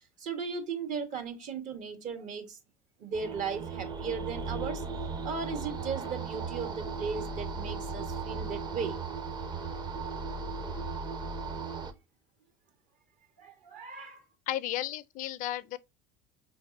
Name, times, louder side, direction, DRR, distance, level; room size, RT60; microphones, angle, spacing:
voice 1, 0.2-2.6 3.0-4.8 5.2-9.0 13.4-14.2, right 5 dB, 50° right, 1.4 m, -36 dB
sound 1, 3.1-11.9, right 4 dB, 25° right, 0.8 m, -36 dB
voice 2, 14.5-15.8, left 13 dB, 50° left, 0.4 m, -33 dB
5.0 x 3.3 x 2.6 m
hypercardioid pair, 85°, 17 cm